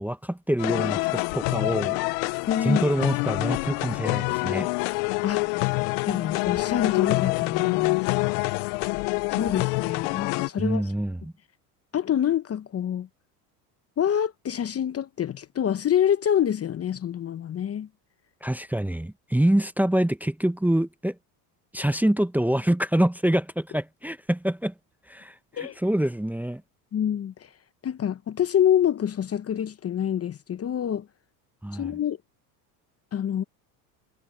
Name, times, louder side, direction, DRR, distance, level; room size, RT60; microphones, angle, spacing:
voice 1, 0.0-2.0 2.6-4.7 10.6-11.3 18.4-21.1 21.7-24.7 25.1-26.6 31.6-31.9, right 1 dB, 5° right, 0.9 m, -25 dB
sound 1, 0.6-10.5, left 28 dB, 70° left, 0.8 m, -26 dB
voice 2, 2.5-2.8 5.2-5.5 6.0-8.0 9.3-10.8 11.9-13.1 14.0-17.9 25.5-25.7 26.9-27.3 27.8-31.0 31.7-32.2 33.1-33.4, left 9 dB, 30° left, 0.9 m, -26 dB
supercardioid pair, 90°, 49 cm